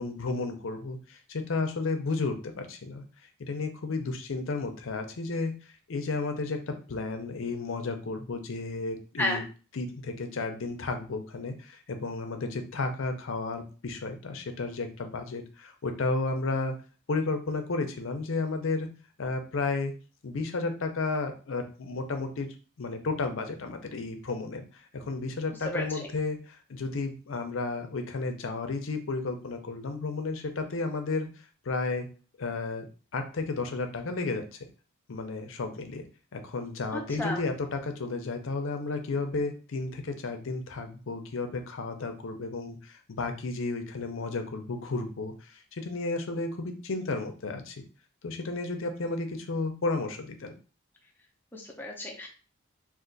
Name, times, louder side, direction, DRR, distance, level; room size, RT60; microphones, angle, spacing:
voice 1, 0.0-3.0 3.4-5.5 5.9-9.4 9.7-16.7 17.1-18.9 19.2-19.9 20.2-22.5 22.8-31.3 31.6-32.1 32.4-32.9 33.1-34.6 35.1-36.0 36.3-47.8 48.2-50.5, left 3 dB, 80° left, 6 dB, 0.6 m, -32 dB
voice 2, 25.6-26.1 36.9-37.4 51.5-52.3, left 1 dB, 10° left, -1 dB, 0.6 m, -32 dB
2.5 x 2.5 x 3.8 m, 0.37 s
head